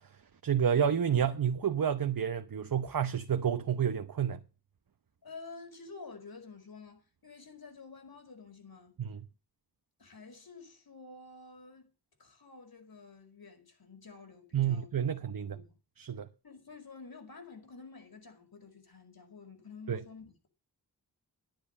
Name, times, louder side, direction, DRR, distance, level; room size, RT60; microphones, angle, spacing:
voice 1, 0.4-4.4 9.1-9.2 14.5-15.6 16.0-16.3 19.9-20.0, right 8 dB, 60° right, 1.0 m, -29 dB
voice 2, 5.2-8.9 10.0-11.9 12.2-15.8 16.4-20.5, left 4 dB, 65° left, 5.1 m, -50 dB
11.0 x 10.5 x 5.6 m
wide cardioid pair, 65°, 39 cm